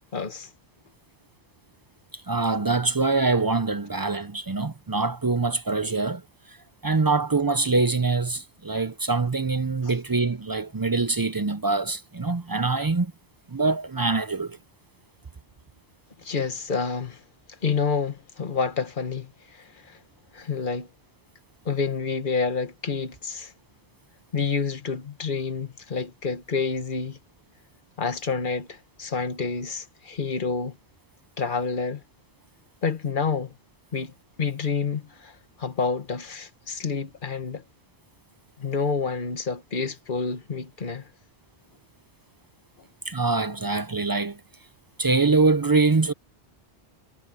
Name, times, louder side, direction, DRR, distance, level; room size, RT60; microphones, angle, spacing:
voice 1, 0.1-0.5 9.8-9.9 16.2-17.2 17.6-20.0 20.3-20.9 21.6-23.5 24.3-27.2 28.0-30.8 31.4-32.0 32.8-33.5 33.9-34.1 34.4-37.6 38.6-41.1, left 5 dB, 50° left, 1.5 m, -28 dB
voice 2, 2.3-6.2 6.5-6.6 6.8-13.1 13.5-14.6 43.1-44.4 45.0-46.1, right 3 dB, 30° right, 0.4 m, -24 dB
omnidirectional pair, 1.1 m